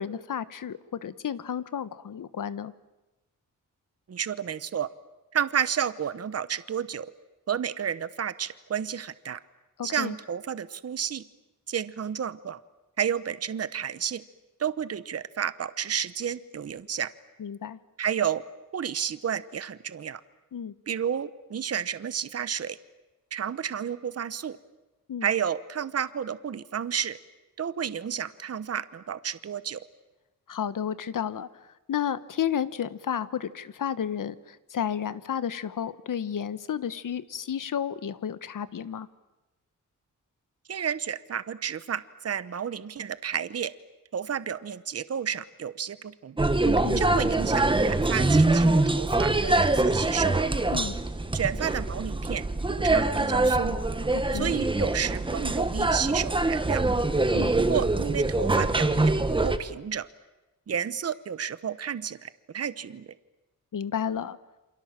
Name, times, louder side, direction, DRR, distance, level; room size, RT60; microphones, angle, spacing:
voice 1, 0.0-2.7 9.8-10.1 17.4-17.8 20.5-20.7 25.1-25.3 30.5-31.5 31.9-39.1 46.6-47.0 50.7-51.0 54.2-54.5 57.3-57.5 63.7-64.4, left 8 dB, 75° left, 14 dB, 1.2 m, -32 dB
voice 2, 4.1-4.9 5.3-7.1 7.5-9.4 9.8-11.2 11.7-12.6 13.0-14.2 14.6-17.1 18.0-18.4 18.7-20.2 20.9-22.8 23.3-24.6 25.2-27.2 27.6-29.8 40.7-43.7 44.1-46.4 47.0-50.4 51.3-52.4 52.7-53.8 54.3-56.8 57.6-59.1 59.4-60.1 60.7-63.1, right 8 dB, 50° right, 15 dB, 1.0 m, -31 dB
sound 1, 46.4-59.6, right 2 dB, 15° right, 1.4 m, -24 dB
28.5 x 27.0 x 7.5 m, 1.1 s
wide cardioid pair, 145°, 33 cm